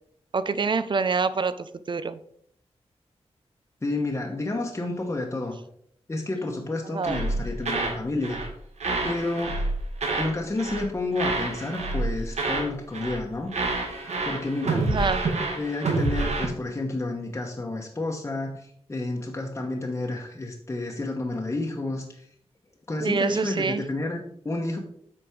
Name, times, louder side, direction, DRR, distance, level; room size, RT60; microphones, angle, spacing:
voice 1, 0.3-2.2 6.8-7.2 14.8-15.2 23.0-23.8, right 4 dB, 45° right, 13 dB, 0.5 m, -26 dB
voice 2, 3.8-5.5 6.1-8.4 9.0-9.7 10.2-13.6 14.2-14.9 15.6-22.2 22.9-24.2 24.4-24.8, left 2 dB, 25° left, 0 dB, 1.1 m, -30 dB
sound 1, 7.0-8.5 8.8-10.3 10.6-10.9 11.1-12.7 12.9-13.2 13.5-16.5, right 3 dB, 80° right, 1.9 m, -28 dB
8.3 x 5.3 x 4.5 m, 0.66 s
wide cardioid pair, 140°, 11 cm